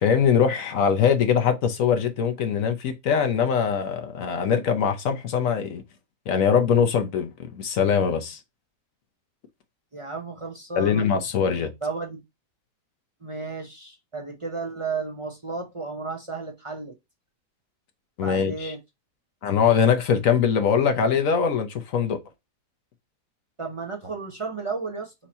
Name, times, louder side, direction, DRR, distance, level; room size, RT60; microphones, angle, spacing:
voice 1, 0.0-5.8 6.3-8.4 10.8-11.7 18.2-18.7 19.4-22.2, left 7 dB, 60° left, 1.1 m, -22 dB
voice 2, 9.9-11.0 11.8-12.2 13.2-16.9 18.2-18.8 23.6-25.1, right 4 dB, 55° right, 0.3 m, -33 dB
4.5 x 2.8 x 4.1 m
omnidirectional pair, 1.7 m